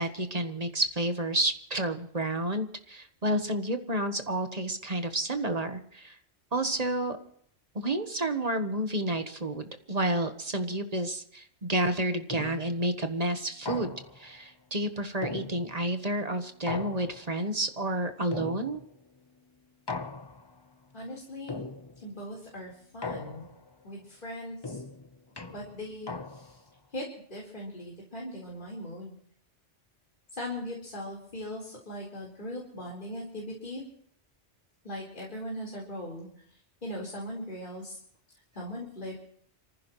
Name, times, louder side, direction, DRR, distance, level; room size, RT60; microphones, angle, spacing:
voice 1, 0.0-6.2 6.5-7.2 7.7-18.8, right 1 dB, 35° right, 7 dB, 1.3 m, -30 dB
sound 1, 12.3-12.8 13.7-14.3 15.2-16.0 16.7-17.5 18.3-19.0 19.9-20.6 21.5-22.1 23.0-23.7 24.6-26.7, left 3 dB, 25° left, 0.9 m, -39 dB
voice 2, 20.9-21.6 22.0-23.4 23.8-24.8 25.5-26.6 26.9-29.1 30.3-33.8 34.8-36.3 36.8-38.0 38.5-39.3, left 1 dB, 40° left, -4 dB, 4.4 m, -39 dB
27.5 x 15.0 x 3.1 m, 0.66 s
omnidirectional pair, 1.2 m